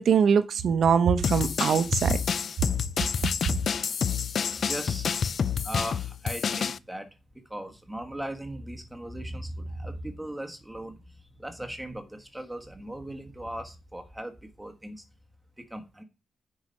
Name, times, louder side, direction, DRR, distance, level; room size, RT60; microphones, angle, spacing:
voice 1, 0.0-2.2, right 7 dB, 65° right, 0.8 m, -22 dB
sound 1, 1.2-6.8, left 7 dB, 50° left, 0.4 m, -28 dB
voice 2, 4.6-5.1 5.6-7.1 7.5-11.0 11.4-15.0 15.6-16.0, right 1 dB, 5° right, 1.5 m, -38 dB
10.0 x 4.9 x 5.3 m
wide cardioid pair, 155°, 0 cm